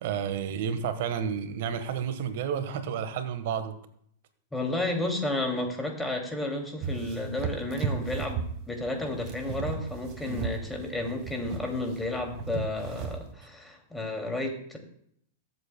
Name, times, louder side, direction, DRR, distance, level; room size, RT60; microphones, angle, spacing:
voice 1, 0.0-3.7 10.2-10.4, right 7 dB, 60° right, 10 dB, 1.3 m, -31 dB
voice 2, 4.5-14.8, left 2 dB, 5° left, 2 dB, 2.4 m, -32 dB
sound 1, 6.8-13.3, right 6 dB, 45° right, 1.7 m, -36 dB
22.0 x 7.7 x 2.2 m, 0.68 s
hypercardioid pair, 100°, 0 cm